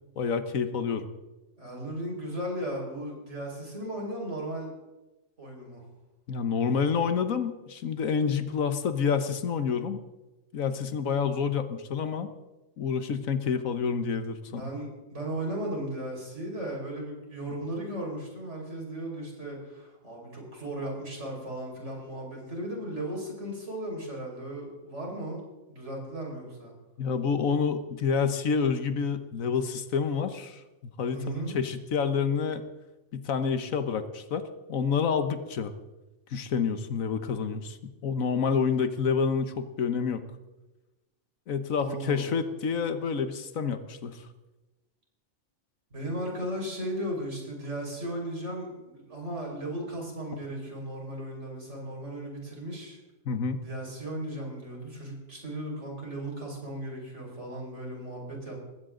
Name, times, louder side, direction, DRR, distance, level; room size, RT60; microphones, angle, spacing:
voice 1, 0.2-1.1 6.3-10.0 10.5-12.3 12.8-14.7 27.0-30.6 31.0-31.2 31.5-32.6 33.1-34.4 34.7-35.7 36.3-37.8 38.0-40.2 41.5-44.2 53.2-53.6, left 6 dB, 85° left, 10 dB, 1.5 m, -28 dB
voice 2, 1.6-4.7 5.4-5.8 14.5-25.4 25.7-26.7 31.1-31.5 41.7-42.4 45.9-53.0 53.6-58.6, right 1 dB, 60° right, -1 dB, 5.6 m, -36 dB
20.0 x 16.0 x 3.9 m, 1.1 s
omnidirectional pair, 1.4 m